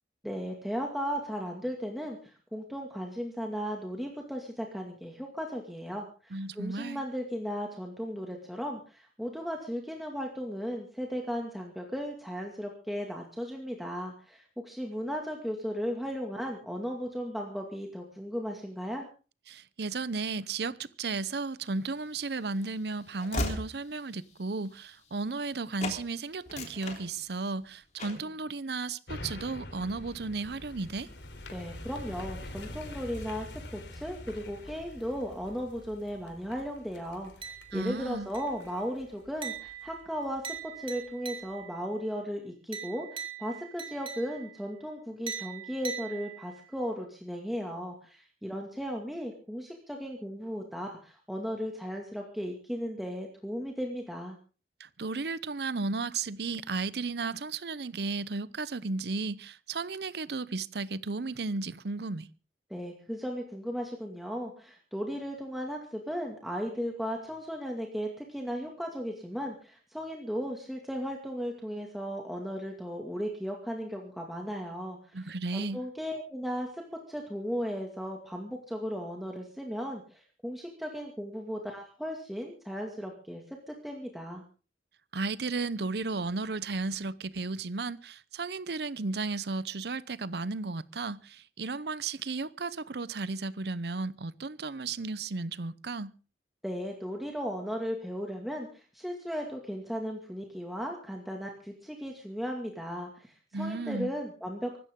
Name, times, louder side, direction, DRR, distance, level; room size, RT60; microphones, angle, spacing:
voice 1, 0.2-19.1 31.5-54.4 62.7-75.2 75.5-84.4 96.6-104.8, equal, ahead, 2.2 m, -36 dB
voice 2, 6.3-7.0 19.5-31.1 37.7-38.3 54.8-62.3 75.1-75.8 85.1-96.1 103.5-104.1, right 3 dB, 65° right, 0.7 m, -34 dB
Train / Slam, 21.9-25.5 25.8-26.0 26.4-27.6 28.0-28.3, left 1 dB, 40° left, 3.4 m, -38 dB
sound 1, 29.1-40.5 41.0-41.1, left 1 dB, 85° left, 3.5 m, -45 dB
sound 2, 37.4-38.0 38.3-38.8 39.4-41.8 42.7-44.6 45.3-46.7, right 7 dB, 30° right, 2.3 m, -42 dB
24.5 x 13.5 x 3.8 m
head